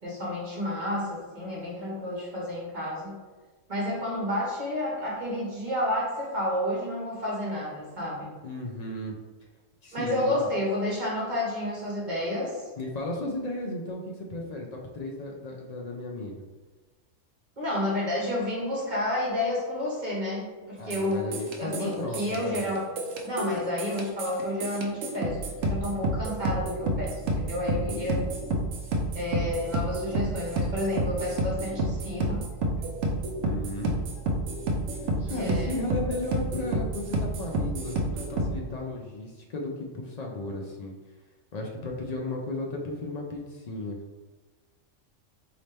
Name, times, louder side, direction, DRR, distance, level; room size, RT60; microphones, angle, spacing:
voice 1, 0.0-3.1 3.7-8.4 9.9-12.6 17.6-22.9 23.2-28.2 29.1-32.4 35.2-35.8, left 1 dB, 35° right, -6 dB, 1.4 m, -30 dB
voice 2, 8.4-9.2 9.8-10.5 12.8-16.5 20.8-22.7 27.9-28.2 33.4-34.0 35.3-41.0 41.5-44.0, left 1 dB, 75° left, 0 dB, 0.3 m, -35 dB
phased delay hat, 20.9-38.5, right 1 dB, 80° right, 1.0 m, -30 dB
4.1 x 2.9 x 3.3 m, 1.3 s
omnidirectional pair, 1.3 m